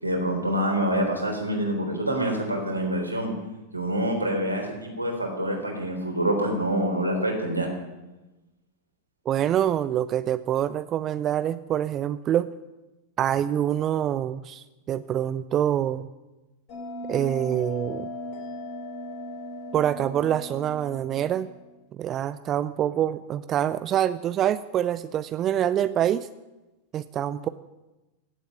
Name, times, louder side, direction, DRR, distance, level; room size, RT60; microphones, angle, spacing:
voice 1, 0.0-3.3 3.7-7.7, right 1 dB, 85° right, 1 dB, 3.9 m, -26 dB
voice 2, 9.3-12.5 13.2-16.1 17.1-18.1 19.7-21.5 22.0-26.3 26.9-27.5, right 10 dB, 30° right, 14 dB, 0.5 m, -25 dB
Bell, 16.7-21.8, left 1 dB, 45° left, 6.0 m, -37 dB
16.5 x 8.2 x 9.6 m, 1.1 s
figure-of-eight pair, 90°, 0 cm